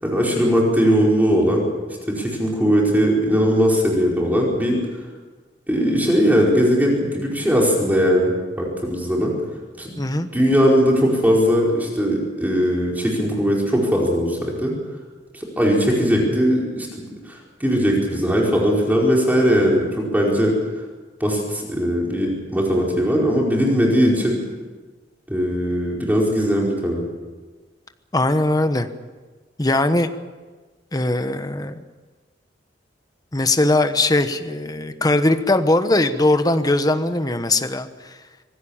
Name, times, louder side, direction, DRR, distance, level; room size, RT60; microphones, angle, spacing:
voice 1, 0.0-1.7 2.1-4.8 5.7-9.3 9.8-9.9 10.3-14.7 15.3-20.5 21.2-24.4 25.3-27.0, equal, 10° right, -2 dB, 5.0 m, -19 dB
voice 2, 10.0-10.3 28.1-28.9 29.6-30.1 30.9-31.8 33.3-38.2, left 2 dB, 20° left, 9 dB, 1.2 m, -20 dB
25.5 x 18.0 x 7.3 m, 1.3 s
head